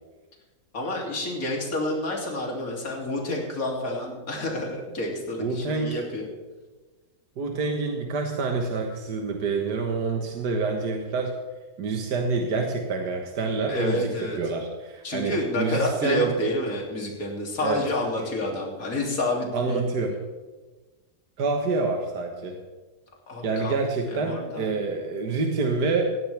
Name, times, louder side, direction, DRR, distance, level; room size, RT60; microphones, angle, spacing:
voice 1, 0.7-6.3 13.7-14.4 15.0-20.1 23.3-23.7 24.1-24.7, left 1 dB, 55° left, -1 dB, 3.4 m, -29 dB
voice 2, 5.4-6.0 7.4-11.4 11.8-16.3 17.6-17.8 19.5-20.2 21.4-22.6 23.4-26.2, right 4 dB, 75° right, 3 dB, 2.0 m, -27 dB
19.0 x 15.5 x 3.5 m, 1.2 s
omnidirectional pair, 1.7 m